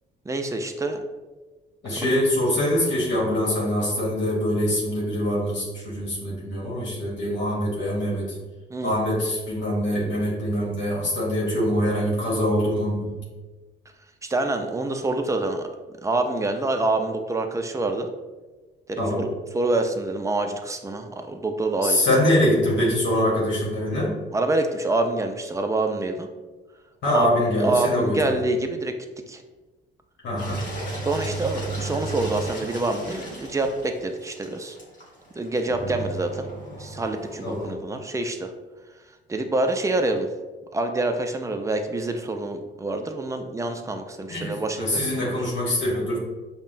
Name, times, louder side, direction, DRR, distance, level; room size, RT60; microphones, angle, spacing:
voice 1, 0.3-1.0 1.8-2.2 8.7-8.9 14.2-15.7 16.0-18.1 18.9-22.0 24.3-26.3 27.1-28.9 29.3-29.4 31.0-34.8 35.3-36.5 36.8-38.5 39.3-40.3 40.7-45.4, right 2 dB, 15° right, 5 dB, 0.4 m, -26 dB
voice 2, 1.8-8.4 8.8-13.2 19.0-19.2 21.8-24.1 27.0-28.4 30.2-30.6 37.4-37.8 44.3-46.2, left 1 dB, 65° left, -5 dB, 1.1 m, -24 dB
Engine, 30.4-37.7, right 2 dB, 45° left, 1.3 m, -34 dB
5.4 x 2.2 x 2.5 m, 1.2 s
cardioid pair, 90°, 20 cm